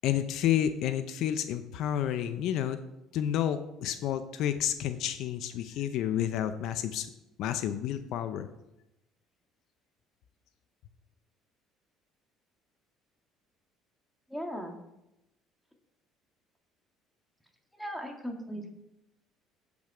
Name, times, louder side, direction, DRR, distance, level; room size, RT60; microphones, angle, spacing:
voice 1, 0.0-2.8 3.1-7.1 7.4-8.5, left 10 dB, 70° left, 11 dB, 0.6 m, -30 dB
voice 2, 14.3-14.8 17.8-18.7, equal, 5° left, 3 dB, 2.0 m, -37 dB
8.3 x 7.0 x 4.9 m, 0.88 s
supercardioid pair, 75°, 0 cm